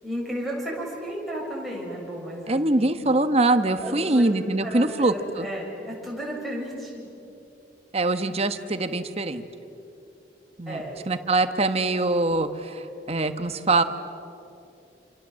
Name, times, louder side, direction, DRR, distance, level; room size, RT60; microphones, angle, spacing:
voice 1, 0.0-3.1 3.8-7.1 10.7-11.1, equal, ahead, -4 dB, 7.0 m, -34 dB
voice 2, 2.5-5.5 7.9-9.4 10.6-13.8, right 2 dB, 35° right, 9 dB, 1.3 m, -23 dB
28.5 x 27.5 x 7.7 m, 2.8 s
head